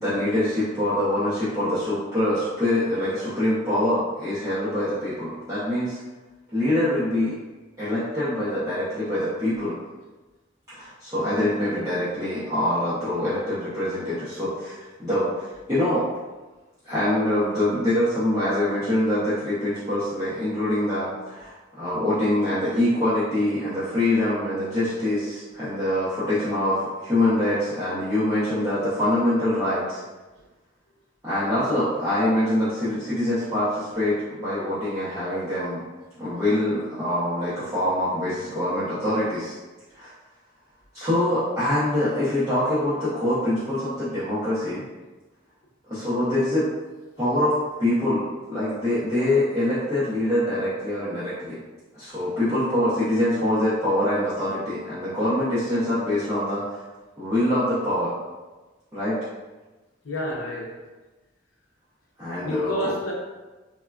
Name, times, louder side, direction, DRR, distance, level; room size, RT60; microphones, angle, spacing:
voice 1, 0.0-6.0 6.5-7.4 7.8-9.8 10.7-16.1 16.8-30.0 31.2-35.8 36.2-39.6 39.9-40.1 40.9-44.8 45.9-46.7 47.2-51.6 51.9-56.8 57.2-58.1 58.9-59.2 62.2-62.9, left 1 dB, 15° right, -15 dB, 0.7 m, -24 dB
voice 2, 60.0-60.8 62.4-63.1, equal, 80° left, -3 dB, 0.5 m, -29 dB
3.6 x 2.2 x 2.3 m, 1.2 s
head